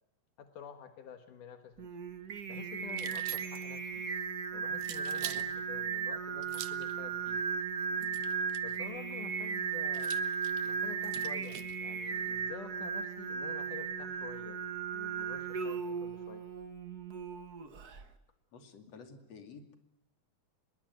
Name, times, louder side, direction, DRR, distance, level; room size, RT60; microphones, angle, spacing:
voice 1, 0.4-1.9 2.5-4.0 4.5-7.4 8.6-10.1 10.6-14.6 14.9-16.4, left 8 dB, 75° left, 7 dB, 2.9 m, -49 dB
Singing, 1.8-18.0, right 6 dB, 40° right, 1.4 m, -36 dB
sound 1, 2.9-3.8 4.8-5.5 6.4-6.9 8.0-8.8 9.9-11.8, right 12 dB, 75° right, 2.7 m, -44 dB
voice 2, 18.5-19.7, left 4 dB, 55° left, 6 dB, 3.7 m, -51 dB
25.0 x 22.0 x 9.3 m, 0.77 s
omnidirectional pair, 3.7 m